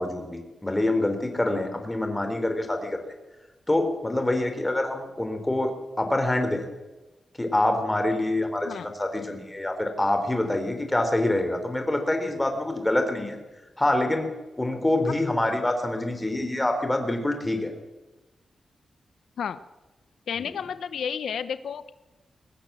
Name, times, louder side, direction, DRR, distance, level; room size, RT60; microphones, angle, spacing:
voice 1, 0.0-3.0 3.7-6.6 7.4-13.4 13.8-14.3 14.6-17.7 20.4-20.6, left 1 dB, 10° left, 6 dB, 4.1 m, -26 dB
voice 2, 20.3-21.9, left 7 dB, 90° left, 13 dB, 0.9 m, -31 dB
22.5 x 19.0 x 7.6 m, 1.1 s
wide cardioid pair, 115°, 0 cm